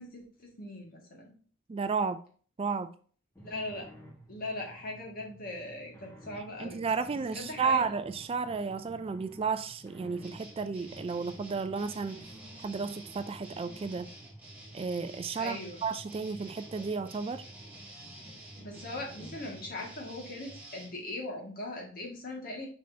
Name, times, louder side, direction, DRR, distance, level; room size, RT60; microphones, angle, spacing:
voice 1, 0.0-1.4 3.4-3.8 4.3-6.8 7.1-7.8 15.4-15.8 18.6-22.7, left 2 dB, 50° left, 2.0 m, -40 dB
voice 2, 1.7-2.2 2.6-2.9 6.6-12.3 12.6-14.1 14.7-17.4, right 5 dB, 30° right, 0.3 m, -33 dB
sound 1, 3.3-19.9, equal, 15° left, 1.4 m, -53 dB
sound 2, 10.2-20.9, right 1 dB, 10° right, 1.8 m, -49 dB
6.3 x 5.5 x 2.8 m
head